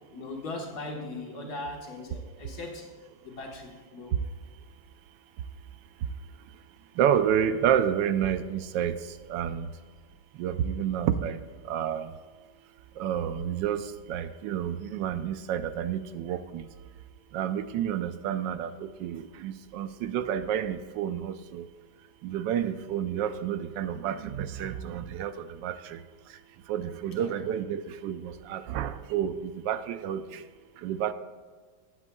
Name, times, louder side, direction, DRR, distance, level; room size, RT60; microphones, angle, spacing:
voice 1, 0.1-2.9 3.2-4.2 27.1-27.4, left 2 dB, 65° left, 1 dB, 1.9 m, -39 dB
voice 2, 7.0-8.9 9.3-9.7 10.4-11.4 11.7-12.1 13.0-13.8 14.1-16.6 17.3-18.7 19.0-21.6 22.2-25.3 25.6-25.7 26.7-30.2 30.8-31.1, right 9 dB, 90° right, 11 dB, 1.3 m, -29 dB
18.5 x 8.2 x 2.3 m, 1.6 s
omnidirectional pair, 1.9 m